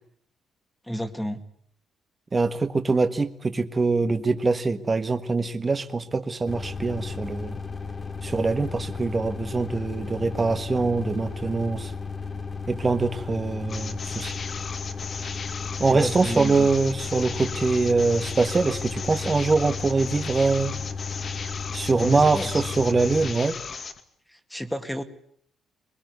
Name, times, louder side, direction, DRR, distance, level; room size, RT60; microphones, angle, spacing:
voice 1, 0.9-1.4 15.8-16.7 21.9-22.6 24.3-25.0, equal, 5° left, 8 dB, 2.2 m, -30 dB
voice 2, 2.3-7.6 8.2-11.9 12.7-14.3 15.8-20.7 21.7-23.5, right 3 dB, 30° right, 9 dB, 1.5 m, -23 dB
sound 1, 6.5-23.3, left 5 dB, 30° left, 1.6 m, -34 dB
sound 2, 13.7-24.0, left 5 dB, 50° left, 2.4 m, -36 dB
22.0 x 21.5 x 9.5 m, 0.64 s
cardioid pair, 90°, 0 cm